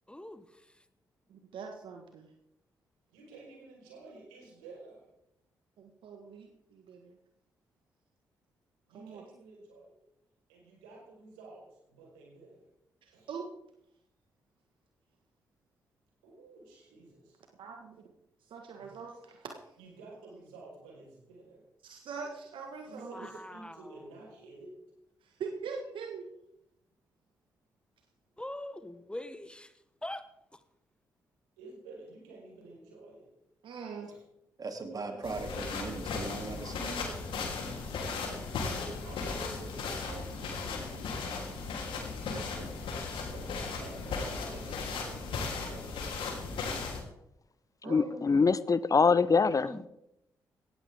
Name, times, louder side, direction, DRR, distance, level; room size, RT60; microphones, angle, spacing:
voice 1, 0.1-0.8 23.1-24.1 28.4-29.7 30.0-30.6 49.6-49.8, left 1 dB, 10° left, 1.3 m, -43 dB
voice 2, 1.3-2.3 5.8-7.2 8.9-9.2 13.0-13.5 17.6-18.0 18.5-19.5 21.8-23.1 25.2-26.2 33.6-34.1 35.1-35.2 42.3-42.7 47.8-48.2, right 5 dB, 70° right, 1.6 m, -43 dB
voice 3, 3.1-5.0 8.9-10.0 10.5-12.6 13.1-13.3 16.2-17.4 18.7-19.0 19.8-21.6 22.8-24.8 31.6-33.3 34.0-34.2 38.0-41.5 43.3-46.6, right 3 dB, 85° right, 4.8 m, -51 dB
voice 4, 34.6-37.0, right 3 dB, 45° right, 3.0 m, -39 dB
sound 1, 35.2-47.0, left 4 dB, 70° left, 3.3 m, -36 dB
voice 5, 47.9-49.9, left 5 dB, 40° left, 0.7 m, -24 dB
18.0 x 14.0 x 3.6 m
hypercardioid pair, 40°, 9 cm